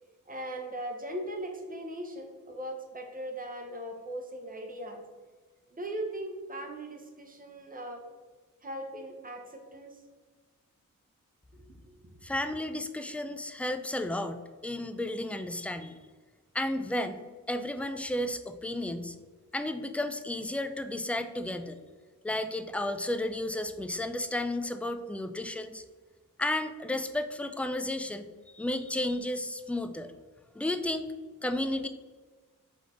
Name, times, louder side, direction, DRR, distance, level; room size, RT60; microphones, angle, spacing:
voice 1, 0.3-5.0 5.7-8.0 8.6-10.0 11.5-12.1, right 1 dB, 25° right, 2 dB, 0.9 m, -39 dB
voice 2, 12.2-15.9 16.5-19.2 19.5-21.8 22.2-25.8 26.4-28.3 28.5-30.1 30.6-31.1 31.4-31.9, left 1 dB, 5° left, 8 dB, 0.3 m, -33 dB
4.0 x 3.4 x 3.7 m, 1.4 s
cardioid pair, 65°, 34 cm